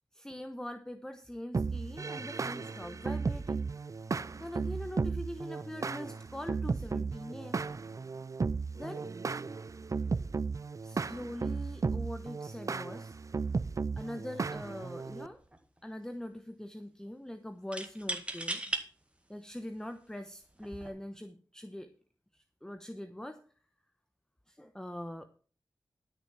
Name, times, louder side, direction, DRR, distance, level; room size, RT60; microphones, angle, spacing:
voice 1, 0.1-3.6 4.4-7.6 8.7-9.1 10.8-13.2 14.0-15.4 15.8-18.6 19.3-21.9 22.3-23.4 24.5-25.3, left 1 dB, 10° left, 8 dB, 0.9 m, -43 dB
sound 1, 1.5-15.3, right 4 dB, 45° right, 0.4 m, -35 dB
sound 2, 14.6-14.8 15.1-15.8 17.7-18.8 19.6-19.7 20.6-20.9, right 1 dB, 15° right, 1.8 m, -37 dB
12.5 x 6.6 x 5.8 m, 0.40 s
wide cardioid pair, 60°, 8 cm